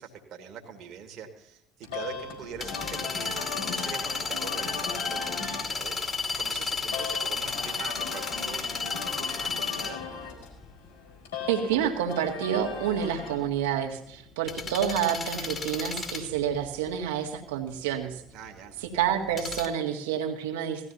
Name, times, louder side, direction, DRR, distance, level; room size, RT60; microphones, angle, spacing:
voice 1, 0.0-5.3 5.5-10.0 18.3-18.7, right 7 dB, 50° right, 3 dB, 2.1 m, -43 dB
sound 1, 1.8-13.4, left 5 dB, 75° left, 4.4 m, -38 dB
sound 2, 1.9-19.7, left 4 dB, 35° left, 2.4 m, -33 dB
voice 2, 11.5-18.2 18.9-20.9, right 9 dB, 70° right, 2 dB, 1.9 m, -28 dB
18.0 x 14.0 x 2.8 m, 0.76 s
figure-of-eight pair, 60°, 0 cm